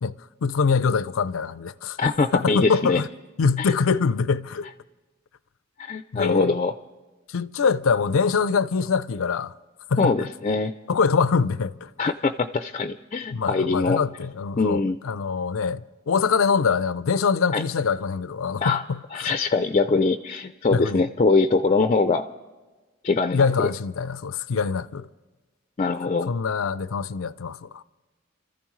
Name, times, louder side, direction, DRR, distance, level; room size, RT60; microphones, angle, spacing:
voice 1, 0.0-2.0 2.3-3.1 3.4-4.7 6.1-6.6 7.3-9.5 9.9-10.2 10.9-11.9 13.3-19.3 20.7-21.1 23.3-25.1 26.3-27.8, left 5 dB, 90° left, 0.5 m, -24 dB
voice 2, 2.0-3.0 3.6-3.7 5.8-6.7 10.0-10.7 12.0-14.0 14.6-15.0 17.5-17.6 18.6-18.8 19.1-22.3 23.0-23.5 25.8-26.3, left 3 dB, 30° left, 0.4 m, -23 dB
28.5 x 14.0 x 3.2 m
head